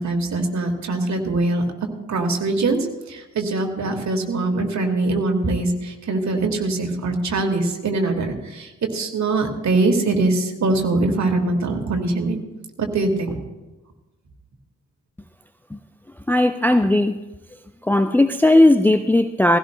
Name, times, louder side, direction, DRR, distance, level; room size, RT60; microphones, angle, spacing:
voice 1, 0.0-1.6 2.1-2.8 3.1-12.4 12.8-13.4, right 2 dB, 45° right, 3 dB, 2.0 m, -22 dB
voice 2, 16.3-17.1 17.8-19.6, left 1 dB, 5° left, 8 dB, 0.5 m, -16 dB
19.0 x 16.0 x 2.2 m, 1.1 s
figure-of-eight pair, 40°, 40 cm